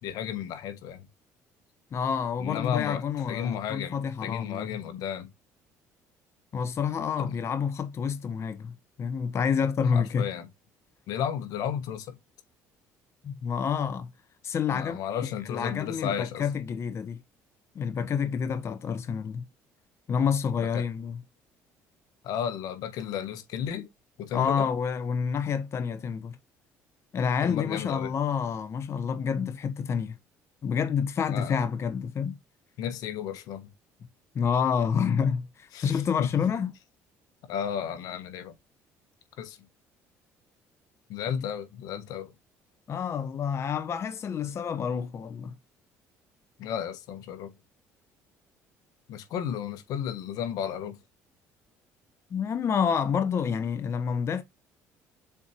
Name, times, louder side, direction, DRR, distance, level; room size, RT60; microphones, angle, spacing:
voice 1, 0.0-1.1 2.4-5.3 7.2-7.4 9.9-10.4 11.1-12.1 14.7-16.4 20.6-20.8 22.2-23.9 24.2-24.7 27.4-28.1 31.3-31.6 32.8-33.7 35.7-36.3 37.5-38.5 39.4-39.6 41.1-42.3 46.6-47.5 49.1-51.0, left 8 dB, 75° left, 1.2 m, -33 dB
voice 2, 1.9-4.8 6.5-10.3 13.2-14.1 14.4-17.2 17.7-19.4 20.1-21.2 24.3-26.4 27.1-30.2 30.6-32.4 34.3-36.7 42.9-45.5 52.3-54.4, left 7 dB, 45° left, 0.9 m, -28 dB
7.2 x 4.5 x 2.9 m
supercardioid pair, 85°, 6 cm